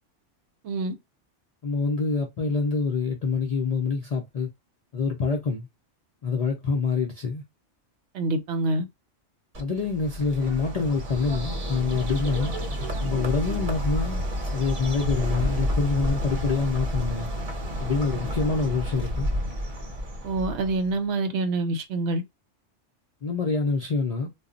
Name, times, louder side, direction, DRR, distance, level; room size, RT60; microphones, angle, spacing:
voice 1, 1.6-4.5 4.9-5.7 6.2-7.4 9.6-12.5 13.0-14.2 14.5-17.3 17.8-19.3 23.2-24.3, left 4 dB, 55° left, 0.4 m, -26 dB
voice 2, 8.1-8.8 20.2-22.2, right 2 dB, 70° right, 0.8 m, -26 dB
Bird, 9.5-21.0, equal, 40° right, 0.6 m, -30 dB
2.2 x 2.0 x 3.7 m
omnidirectional pair, 1.3 m